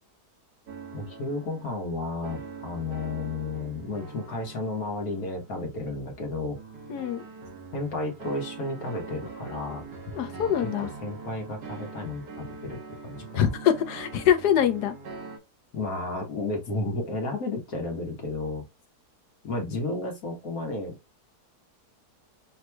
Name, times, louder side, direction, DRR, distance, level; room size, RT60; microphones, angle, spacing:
sound 1, 0.7-15.4, right 4 dB, 75° right, 1.7 m, -43 dB
voice 1, 0.9-6.6 7.7-9.9 10.4-13.5 15.7-18.7 19.4-21.0, left 2 dB, 65° left, 1.8 m, -32 dB
voice 2, 6.9-7.3 10.2-10.9 13.3-14.9, left 9 dB, 80° left, 1.4 m, -24 dB
6.4 x 3.1 x 2.3 m
omnidirectional pair, 1.7 m